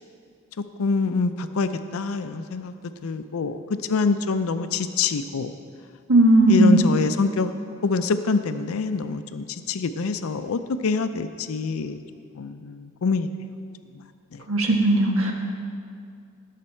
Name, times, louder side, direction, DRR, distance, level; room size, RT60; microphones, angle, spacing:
voice 1, 0.8-2.7 3.0-3.6 3.9-5.5 6.5-7.5 7.8-12.0 12.4-13.3 14.3-14.4, left 4 dB, 80° left, 10 dB, 0.5 m, -25 dB
voice 2, 6.1-6.8 14.5-15.3, right 1 dB, 75° right, 1 dB, 1.6 m, -17 dB
18.0 x 6.7 x 4.4 m, 2.3 s
head